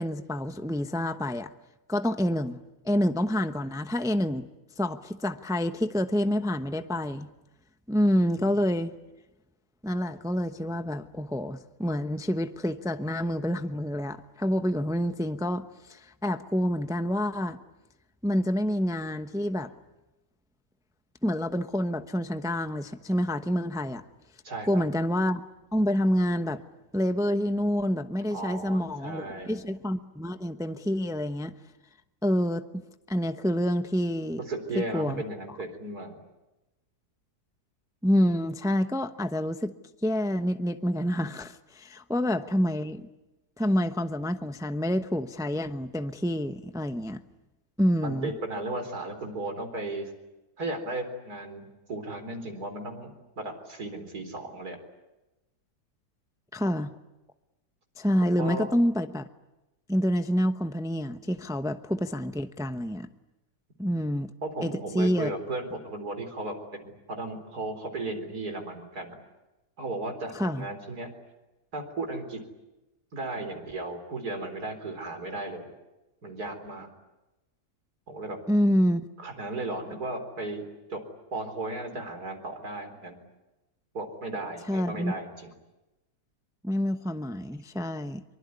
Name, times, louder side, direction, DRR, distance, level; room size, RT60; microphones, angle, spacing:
voice 1, 0.0-1.5 1.9-4.5 4.8-7.3 7.9-8.9 9.8-17.6 18.2-19.7 21.2-24.0 24.7-25.4 25.7-26.6 26.9-31.5 32.2-32.7 33.1-34.4 34.7-35.2 38.0-39.7 40.0-43.0 43.6-47.2 47.8-48.3 56.5-56.9 58.0-59.3 59.9-63.1 63.8-64.3 64.6-65.3 70.3-70.7 78.5-79.0 84.7-85.1 86.6-88.2, equal, 5° right, 9 dB, 0.7 m, -27 dB
voice 2, 8.1-8.5 24.4-24.8 28.3-29.6 34.4-36.1 48.0-50.1 50.6-54.8 58.4-58.7 63.9-64.0 64.4-66.5 66.8-69.1 69.8-71.1 71.7-72.4 73.1-75.7 76.2-76.9 78.1-78.4 79.2-80.6 80.9-81.0 81.3-83.2 83.9-85.5, right 2 dB, 75° right, 6 dB, 4.6 m, -35 dB
24.0 x 24.0 x 9.6 m, 1.0 s
omnidirectional pair, 1.6 m